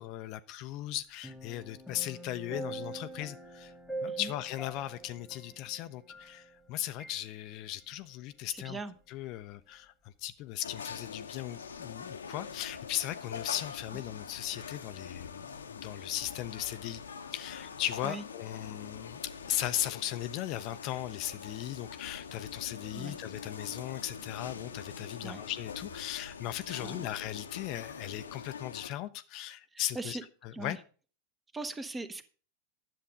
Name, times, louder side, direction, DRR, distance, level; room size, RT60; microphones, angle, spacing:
voice 1, 0.0-3.7 4.0-8.8 9.1-17.0 17.3-30.8, left 13 dB, 40° left, 0.5 m, -37 dB
sound 1, 1.2-6.7 7.0-7.2, right 2 dB, ahead, 1.5 m, -43 dB
voice 2, 8.5-8.9 18.0-18.2 22.9-23.2 25.2-25.4 26.7-27.1 29.7-30.2 30.5-30.8 31.5-32.3, right 3 dB, 15° right, 0.9 m, -40 dB
sound 2, 10.6-28.9, left 6 dB, 70° left, 0.8 m, -44 dB
10.5 x 7.6 x 5.1 m
figure-of-eight pair, 90°, 0 cm